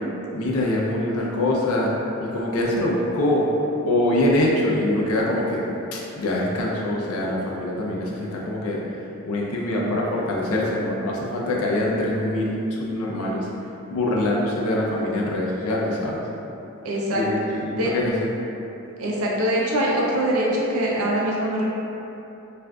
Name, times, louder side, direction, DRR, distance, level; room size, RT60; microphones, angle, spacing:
voice 1, 0.3-1.9 2.2-3.5 3.8-5.6 5.9-8.8 9.2-13.5 13.9-16.2 17.1-18.3, left 1 dB, 90° left, -3 dB, 0.5 m, -24 dB
voice 2, 16.8-17.2 17.7-17.9 19.0-21.6, right 1 dB, 90° right, -4 dB, 0.6 m, -23 dB
3.4 x 2.5 x 2.3 m, 3.0 s
head